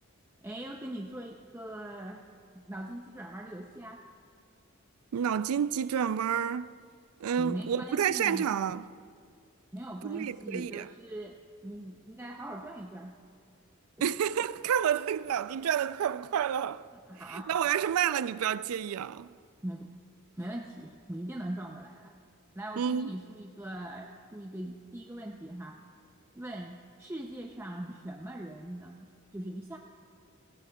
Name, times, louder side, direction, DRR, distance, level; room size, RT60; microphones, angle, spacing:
voice 1, 0.4-2.2 2.5-4.1 7.4-8.5 9.7-13.2 17.1-17.5 19.6-20.0 20.3-22.1 22.5-25.8 26.3-29.8, right 1 dB, 10° right, 0.5 m, -41 dB
voice 2, 5.1-6.7 7.2-8.9 10.0-10.9 14.0-16.9 17.3-19.3 22.8-23.1, right 8 dB, 85° right, 0.3 m, -29 dB
18.5 x 16.5 x 2.3 m
head